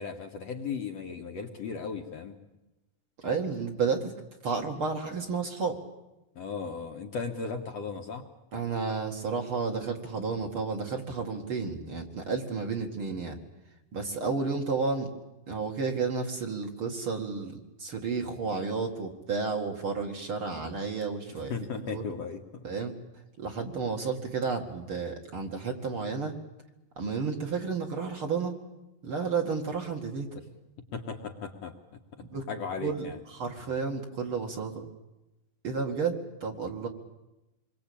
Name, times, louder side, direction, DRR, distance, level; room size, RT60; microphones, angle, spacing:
voice 1, 0.0-2.4 6.4-8.2 21.3-22.6 30.9-31.7 32.3-33.2, left 5 dB, 60° left, 3 dB, 2.0 m, -36 dB
voice 2, 3.2-4.1 4.4-5.8 8.5-13.4 13.9-15.1 15.5-22.0 22.6-22.9 23.4-26.3 27.0-28.6 29.0-30.3 32.2-32.4 32.8-34.9 35.6-36.9, right 4 dB, 45° right, 2 dB, 2.5 m, -32 dB
26.5 x 22.5 x 8.6 m, 0.97 s
omnidirectional pair, 4.1 m